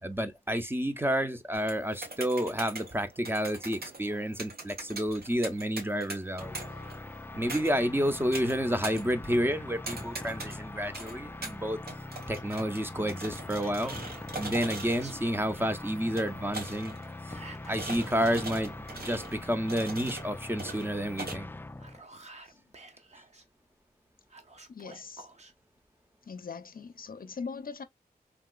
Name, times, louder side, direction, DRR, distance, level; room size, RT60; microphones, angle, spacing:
voice 1, 0.0-6.5 7.4-11.8 12.3-14.0 14.3-17.0 17.7-21.5, equal, 15° right, 0.7 m, -30 dB
sound 1, 1.5-21.3, right 2 dB, 75° right, 1.7 m, -43 dB
sound 2, 6.4-22.0, left 2 dB, 15° left, 0.3 m, -42 dB
Whispering, 13.6-14.3 14.9-15.7 17.3-18.6 21.6-23.5 24.3-25.5, right 3 dB, 45° right, 1.0 m, -50 dB
voice 2, 24.7-25.3 26.3-27.8, left 5 dB, 65° left, 0.5 m, -41 dB
3.6 x 2.9 x 2.3 m
cardioid pair, 50°, 16 cm